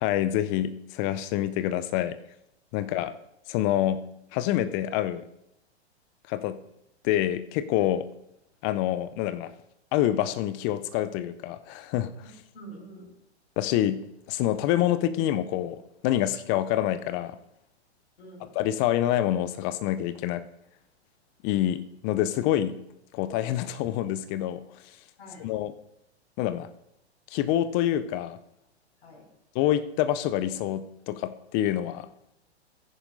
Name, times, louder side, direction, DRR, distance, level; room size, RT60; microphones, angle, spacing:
voice 1, 0.0-2.2 2.7-3.1 3.5-4.1 4.3-5.2 6.3-6.6 7.0-8.1 8.6-9.5 9.9-12.1 13.6-14.0 14.3-17.4 18.6-20.4 21.4-22.8 23.1-24.6 25.4-25.7 26.4-26.7 27.3-28.4 29.5-32.1, left 12 dB, 20° left, 13 dB, 0.3 m, -26 dB
voice 2, 12.2-13.1 18.2-18.5 25.2-25.5 29.0-29.3, right 1 dB, 60° left, -2 dB, 4.9 m, -47 dB
15.5 x 10.0 x 2.6 m, 0.82 s
figure-of-eight pair, 105°, 33 cm